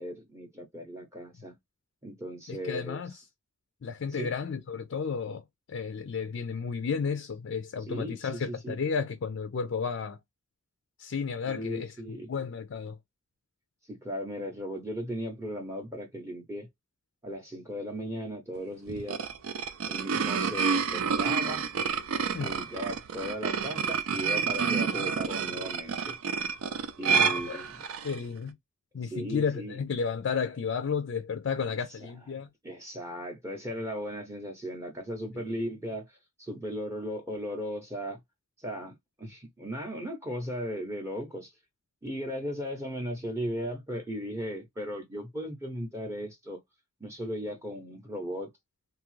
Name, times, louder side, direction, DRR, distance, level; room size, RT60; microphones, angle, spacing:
voice 1, 0.0-1.5 2.0-3.2 4.1-4.3 7.9-8.8 11.4-12.3 13.9-16.7 17.2-19.3 19.9-21.7 22.4-26.2 27.0-27.8 29.0-29.8 32.0-32.1 32.3-38.2 38.6-41.5 42.0-46.6 47.0-48.5, equal, 15° right, 0.6 m, -37 dB
voice 2, 2.5-3.1 3.8-10.2 11.0-12.0 12.3-13.0 22.3-22.6 27.1-27.6 28.0-28.6 28.9-32.5, left 6 dB, 55° left, 0.4 m, -32 dB
sound 1, 18.9-28.2, right 6 dB, 70° right, 0.4 m, -29 dB
2.7 x 2.4 x 3.0 m
head